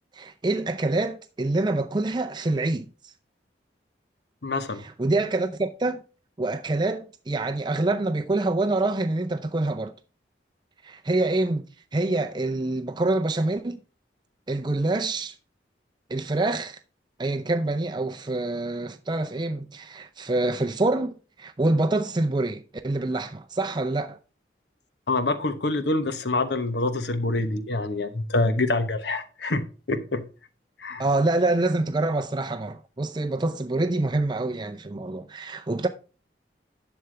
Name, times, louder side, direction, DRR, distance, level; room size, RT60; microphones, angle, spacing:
voice 1, 0.1-2.9 4.8-6.0 6.4-9.9 10.8-11.6 11.9-13.8 14.5-15.4 16.1-16.8 17.2-24.2 31.0-35.9, right 2 dB, 25° right, 0.5 m, -26 dB
voice 2, 4.4-4.8 25.1-30.3 30.8-31.0, left 2 dB, 70° left, 1.0 m, -26 dB
11.0 x 6.9 x 3.3 m
head